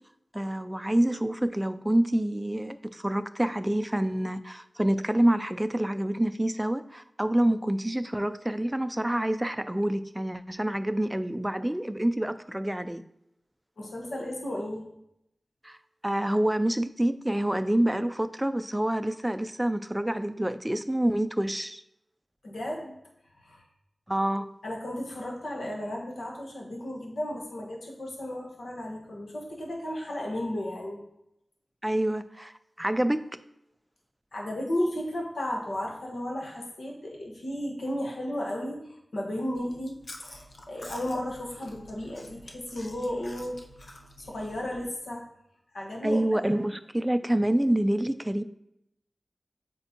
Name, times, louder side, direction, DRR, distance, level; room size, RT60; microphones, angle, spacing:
voice 1, 0.3-13.0 15.6-15.8 16.0-21.8 24.1-24.5 31.8-33.2 46.0-48.4, right 1 dB, 10° right, 11 dB, 0.3 m, -27 dB
voice 2, 13.8-14.9 22.4-22.9 23.4-23.6 24.6-31.0 34.3-45.2 45.7-46.4, left 1 dB, 90° left, -1 dB, 1.2 m, -34 dB
Chewing mastication, 39.6-44.9, left 1 dB, 60° left, 0.7 m, -48 dB
8.0 x 4.3 x 2.9 m, 0.80 s
wide cardioid pair, 80°, 0 cm